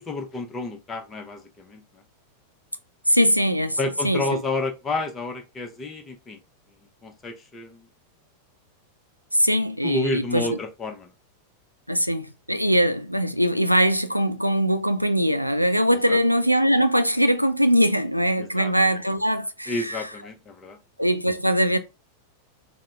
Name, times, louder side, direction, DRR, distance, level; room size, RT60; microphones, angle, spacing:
voice 1, 0.0-1.8 3.8-6.4 7.0-7.8 9.8-11.1 16.1-16.2 18.4-18.7 19.7-20.8, left 2 dB, 20° left, 0.5 m, -30 dB
voice 2, 3.1-3.8 4.0-4.4 9.3-10.6 11.9-20.1 21.0-21.8, equal, 90° right, 0.3 m, -21 dB
3.8 x 2.0 x 3.4 m
figure-of-eight pair, 90°, 0 cm